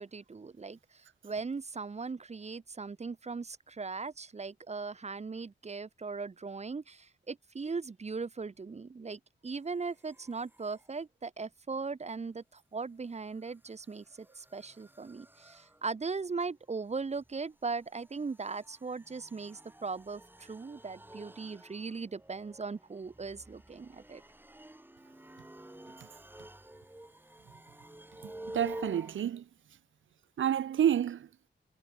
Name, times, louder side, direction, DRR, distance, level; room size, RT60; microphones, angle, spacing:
voice 1, 0.0-24.2, right 4 dB, 35° right, 0.9 m, -39 dB
sound 1, 9.9-10.9 13.0-29.2, right 1 dB, 10° right, 2.6 m, -50 dB
voice 2, 28.2-29.4 30.4-31.3, right 10 dB, 80° right, 0.7 m, -29 dB
wide cardioid pair, 95°, 20 cm